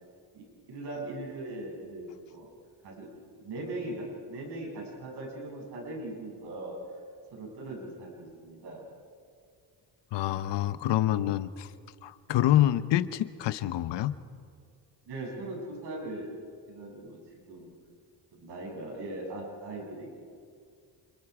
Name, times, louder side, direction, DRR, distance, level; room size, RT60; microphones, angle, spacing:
voice 1, 0.3-2.5 2.8-3.1 3.4-6.8 7.3-8.8 15.1-16.3 16.7-17.7 18.3-20.1, right 2 dB, 70° right, -1 dB, 7.9 m, -40 dB
voice 2, 10.1-11.7 12.0-14.2, left 13 dB, 85° left, 13 dB, 1.0 m, -26 dB
29.5 x 29.0 x 4.9 m, 2.2 s
cardioid pair, 95°, 41 cm